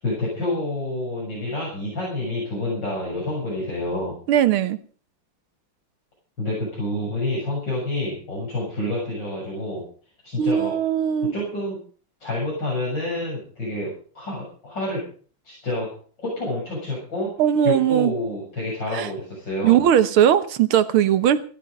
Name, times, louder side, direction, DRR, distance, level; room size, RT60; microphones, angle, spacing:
voice 1, 0.0-4.2 6.4-9.8 10.2-10.7 11.3-11.8 12.2-15.0 15.4-15.9 16.2-17.3 17.6-19.8, left 1 dB, 60° left, 8.1 m, -28 dB
voice 2, 4.3-4.8 10.4-11.3 17.4-18.1 18.9-19.1 19.6-21.4, right 10 dB, 85° right, 2.0 m, -19 dB
16.0 x 13.5 x 5.3 m
omnidirectional pair, 2.3 m